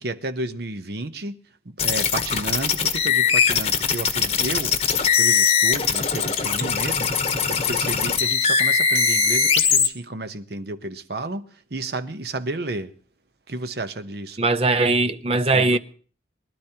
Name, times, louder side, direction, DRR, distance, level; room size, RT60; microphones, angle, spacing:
voice 1, 0.0-1.4 1.6-4.8 5.0-12.9 13.5-14.4 15.5-15.8, right 2 dB, 55° right, 0.9 m, -32 dB
sound 1, 1.8-9.9, left 6 dB, 30° left, 1.0 m, -21 dB
voice 2, 14.4-15.8, right 3 dB, 30° right, 0.6 m, -20 dB
23.5 x 12.0 x 2.9 m
head